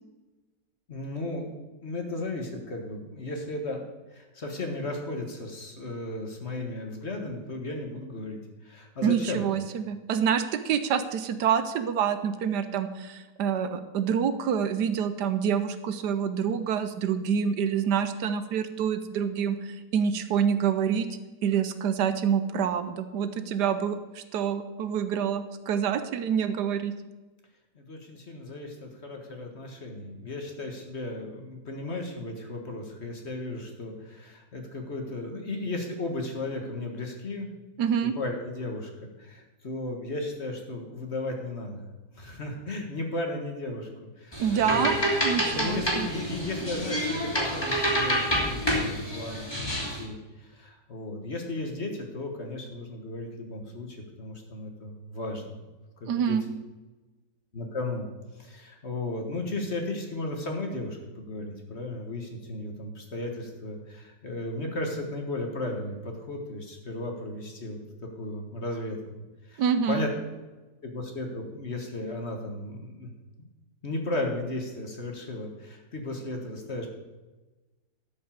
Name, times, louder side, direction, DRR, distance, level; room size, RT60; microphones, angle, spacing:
voice 1, 0.9-1.5 1.8-3.8 4.1-9.5 27.7-37.5 38.1-43.9 44.2-45.0 45.5-55.6 56.0-56.4 57.5-58.1 58.3-67.8 68.2-70.1 70.8-73.1 73.4-73.5 73.8-76.9, left 2 dB, 40° left, 3 dB, 1.6 m, -35 dB
voice 2, 9.0-21.1 21.4-26.9 37.8-38.1 44.4-45.0 45.2-46.1 56.1-56.4 69.6-70.0, right 7 dB, 75° right, 11 dB, 1.3 m, -27 dB
sound 1, 44.3-50.0, equal, 15° left, 2.6 m, -28 dB
12.0 x 5.4 x 7.2 m, 1.2 s
omnidirectional pair, 1.8 m